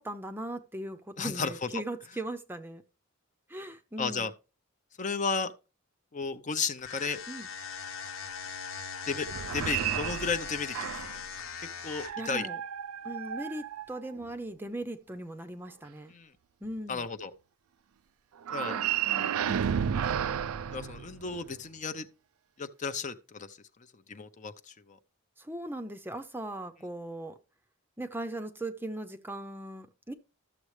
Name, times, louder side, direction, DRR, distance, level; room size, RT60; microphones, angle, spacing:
voice 1, 0.0-2.8 3.5-4.3 7.3-7.5 12.2-12.6 13.0-16.1 16.6-17.0 18.6-19.9 25.4-27.4 28.0-30.1, right 1 dB, 10° right, 0.6 m, -39 dB
voice 2, 1.2-1.7 4.0-4.3 5.0-5.5 6.1-7.2 9.1-10.8 11.8-12.5 16.1-16.3 16.9-17.3 18.5-18.8 20.7-22.1 22.6-23.6 24.1-25.0, left 5 dB, 35° left, 0.6 m, -33 dB
sound 1, 6.8-12.3, left 6 dB, 65° left, 1.0 m, -40 dB
sound 2, 9.2-11.3 11.9-14.3 18.4-21.6, right 9 dB, 80° right, 0.4 m, -32 dB
13.0 x 7.2 x 3.2 m
head